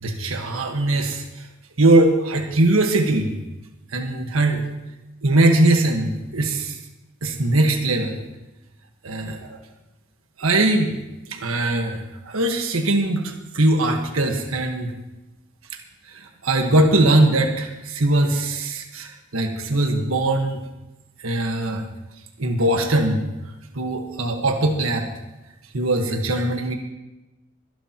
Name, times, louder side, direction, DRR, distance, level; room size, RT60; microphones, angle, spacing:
voice 1, 0.0-1.5 1.8-3.3 3.9-4.6 5.2-6.8 7.2-8.2 9.0-9.6 10.4-10.9 11.3-14.9 16.1-20.6 21.2-21.8 22.4-23.2 23.7-25.1 25.7-26.8, right 2 dB, 90° right, 3 dB, 1.5 m, -21 dB
23.0 x 11.0 x 3.0 m, 1.0 s
head